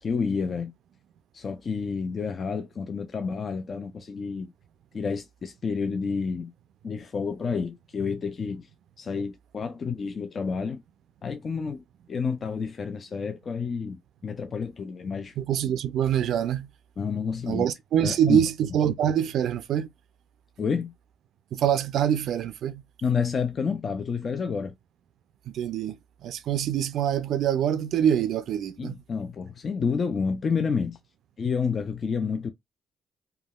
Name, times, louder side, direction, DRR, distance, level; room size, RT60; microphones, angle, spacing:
voice 1, 0.0-0.7 1.3-4.5 4.9-6.5 6.8-8.7 9.0-10.8 11.2-11.8 12.1-15.4 17.0-17.7 18.0-18.4 20.6-20.9 23.0-24.7 28.8-31.0 31.4-32.5, left 5 dB, 45° left, 0.3 m, -29 dB
voice 2, 15.4-16.7 17.5-19.9 21.5-22.8 25.5-29.0, right 9 dB, 75° right, 0.3 m, -25 dB
3.5 x 2.3 x 2.2 m
cardioid pair, 90°, 0 cm